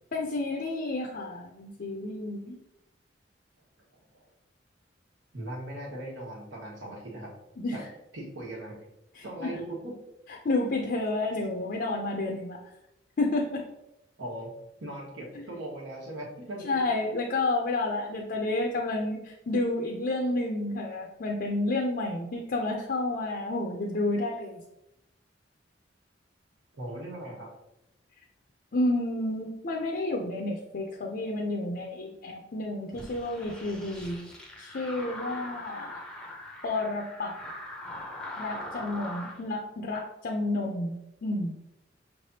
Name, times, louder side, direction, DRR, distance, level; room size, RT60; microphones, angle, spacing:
voice 1, 0.1-2.6 7.6-7.8 9.1-9.5 10.4-12.7 13.2-13.6 15.3-15.4 16.6-24.6 28.7-34.3 34.6-36.0 36.6-37.4 38.4-41.6, left 2 dB, 55° left, 0 dB, 0.5 m, -30 dB
voice 2, 3.9-4.2 5.3-7.3 7.7-7.8 8.1-8.8 9.2-9.9 14.2-14.5 14.8-16.7 26.7-27.5, right 1 dB, 85° right, -3 dB, 1.4 m, -39 dB
sound 1, 32.9-39.4, left 1 dB, 5° left, 0.6 m, -41 dB
5.8 x 3.3 x 2.7 m, 0.88 s
head